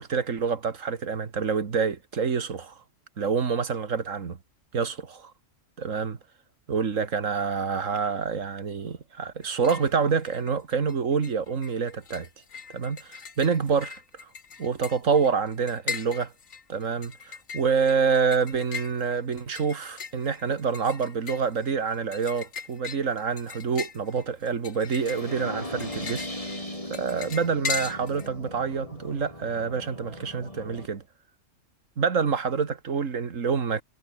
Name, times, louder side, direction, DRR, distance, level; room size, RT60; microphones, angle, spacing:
voice 1, 0.0-2.7 3.2-4.4 4.7-5.3 5.8-6.2 6.7-12.3 12.7-13.9 14.6-16.3 16.7-26.3 26.9-31.0 32.0-33.8, right 5 dB, 80° right, 2.1 m, -27 dB
sound 1, 9.4-9.9 10.2-10.9 11.2-28.3, left 6 dB, 90° left, 2.0 m, -39 dB
sound 2, 24.9-30.9, left 1 dB, 25° left, 7.2 m, -38 dB
omnidirectional pair, 1.3 m